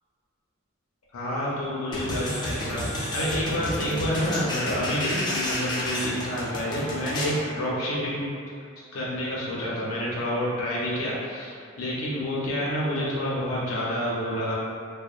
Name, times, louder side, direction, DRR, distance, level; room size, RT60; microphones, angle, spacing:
voice 1, 1.1-8.3 8.9-14.5, equal, 80° left, -7 dB, 0.5 m, -28 dB
sound 1, 1.9-7.4, left 1 dB, 20° left, 0.3 m, -31 dB
2.8 x 2.0 x 2.3 m, 2.3 s
head